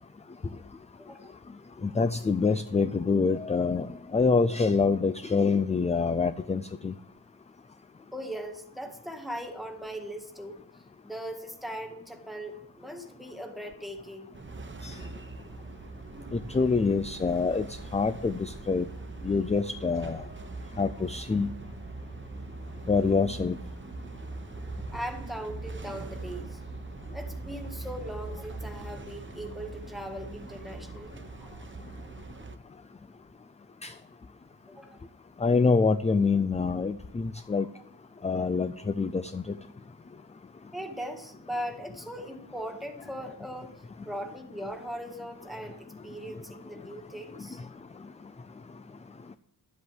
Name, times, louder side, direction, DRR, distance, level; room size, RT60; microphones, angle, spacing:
voice 1, 1.0-1.3 8.1-14.3 24.5-26.6 27.1-31.6 34.7-35.0 37.5-37.8 40.7-47.6, equal, ahead, 3 dB, 1.7 m, -39 dB
voice 2, 1.8-6.9 14.8-15.0 16.3-18.9 19.2-20.2 20.8-21.5 22.9-23.6 33.8-33.9 35.4-37.7 38.2-39.6, left 4 dB, 15° left, 11 dB, 0.4 m, -26 dB
sound 1, 14.3-32.6, right 3 dB, 30° right, 1.0 m, -41 dB
12.0 x 8.2 x 8.0 m, 0.75 s
wide cardioid pair, 160°, 41 cm